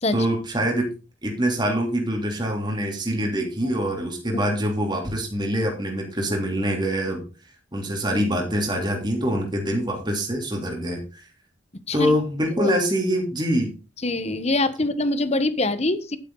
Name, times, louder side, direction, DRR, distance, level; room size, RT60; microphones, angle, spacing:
voice 1, 0.1-0.9 1.2-7.2 7.7-11.2 11.9-13.7, equal, 25° right, 1 dB, 3.0 m, -24 dB
voice 2, 14.0-16.2, left 2 dB, 35° left, 12 dB, 1.2 m, -24 dB
11.5 x 8.9 x 4.0 m, 0.31 s
head